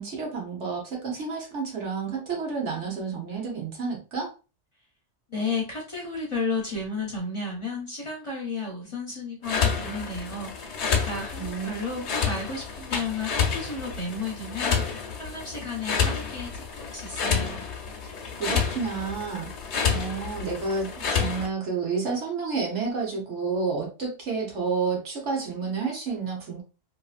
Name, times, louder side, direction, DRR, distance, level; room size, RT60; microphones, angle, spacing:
voice 1, 0.0-4.3 11.4-11.7 18.4-19.5 19.9-26.6, right 4 dB, 75° right, 0 dB, 1.3 m, -30 dB
voice 2, 5.3-17.6, left 3 dB, 30° left, -2 dB, 0.7 m, -33 dB
sound 1, 9.4-21.5, left 6 dB, 70° left, 1.0 m, -29 dB
2.9 x 2.8 x 2.4 m, 0.32 s
omnidirectional pair, 1.2 m